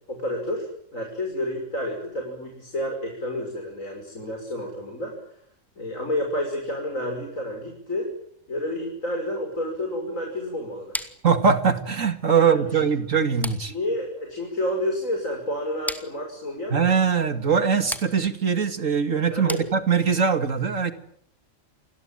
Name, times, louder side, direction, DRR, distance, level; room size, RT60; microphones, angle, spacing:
voice 1, 0.1-0.7 0.9-5.2 5.8-8.1 8.5-11.0 12.3-12.8 13.7-16.7 19.3-19.6, left 1 dB, 85° left, 2 dB, 6.5 m, -30 dB
sound 1, 10.9-20.3, equal, ahead, 2.4 m, -39 dB
voice 2, 11.2-13.7 16.7-20.9, right 6 dB, 75° right, 9 dB, 2.8 m, -22 dB
29.5 x 21.0 x 9.2 m, 0.67 s
omnidirectional pair, 1.3 m